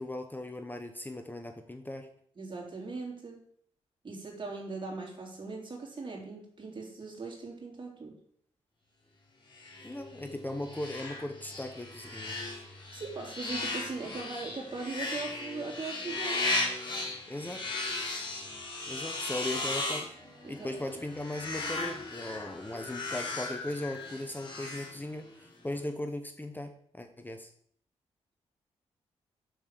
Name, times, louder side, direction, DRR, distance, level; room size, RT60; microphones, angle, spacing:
voice 1, 0.0-2.1 9.8-12.4 17.3-17.6 18.9-20.1 20.5-27.5, left 1 dB, 15° left, 6 dB, 1.0 m, -38 dB
voice 2, 2.4-3.4 4.0-8.1 12.9-16.4 20.4-20.7, right 3 dB, 40° right, 0 dB, 3.4 m, -39 dB
sound 1, 9.5-25.5, left 2 dB, 40° left, 4.1 m, -37 dB
6.3 x 5.4 x 6.6 m, 0.64 s
cardioid pair, 60°, 12 cm